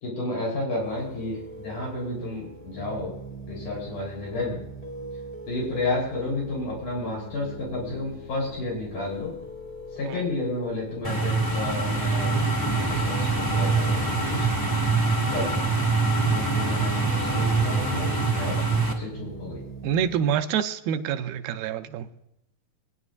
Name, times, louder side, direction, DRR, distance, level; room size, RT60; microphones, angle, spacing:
voice 1, 0.0-3.1 3.5-4.6 5.5-9.3 10.0-14.5 15.3-15.9 16.3-18.6 18.9-19.6, left 2 dB, 55° left, 5.0 m, -31 dB
sound 1, 0.8-20.4, equal, 5° left, 1.8 m, -42 dB
sound 2, 11.0-18.9, right 3 dB, 20° left, 0.6 m, -24 dB
voice 2, 19.8-22.1, right 8 dB, 85° right, 2.4 m, -27 dB
21.5 x 10.0 x 2.5 m
omnidirectional pair, 4.2 m